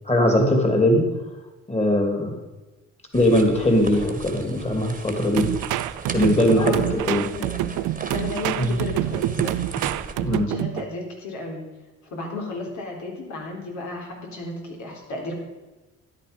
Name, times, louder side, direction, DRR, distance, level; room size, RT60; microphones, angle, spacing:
voice 1, 0.0-1.1 1.7-2.3 3.1-5.5 6.1-7.3 8.6-8.8 10.2-10.5, left 1 dB, 20° left, 4 dB, 2.8 m, -20 dB
sound 1, 3.1-10.1, right 3 dB, 25° right, 1.6 m, -36 dB
sound 2, 5.4-10.9, right 16 dB, 85° right, 0.5 m, -27 dB
voice 2, 6.5-7.9 8.1-9.5 10.2-11.6 12.1-15.3, left 2 dB, 70° left, 0 dB, 3.9 m, -33 dB
13.0 x 10.0 x 5.3 m, 1.1 s
cardioid pair, 90°, 30 cm